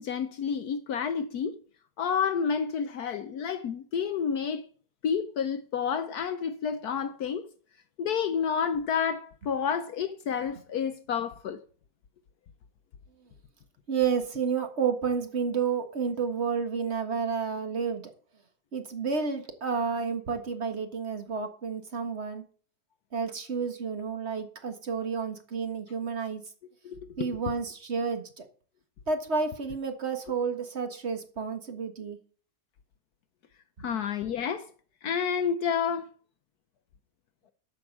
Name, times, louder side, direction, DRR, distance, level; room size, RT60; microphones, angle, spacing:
voice 1, 0.0-1.5 2.0-4.6 5.0-7.4 8.0-11.6 26.8-27.3 33.8-34.7 35.0-36.1, left 7 dB, 70° left, 1.2 m, -29 dB
voice 2, 13.9-18.0 18.7-22.4 23.1-26.4 27.2-28.2 29.1-32.2 33.9-34.0, right 5 dB, 40° right, 1.8 m, -30 dB
12.5 x 5.9 x 7.3 m
omnidirectional pair, 1.8 m